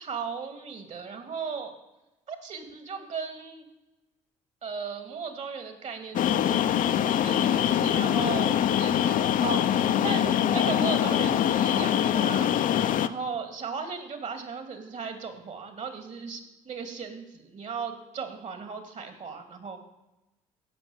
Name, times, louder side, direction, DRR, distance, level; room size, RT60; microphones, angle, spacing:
voice 1, 0.0-1.7 2.3-3.7 4.6-19.8, right 5 dB, 50° right, 7 dB, 2.7 m, -36 dB
sound 1, 6.1-13.1, left 10 dB, 60° left, 0.7 m, -24 dB
16.5 x 6.1 x 7.4 m, 0.99 s
hypercardioid pair, 60°, 15 cm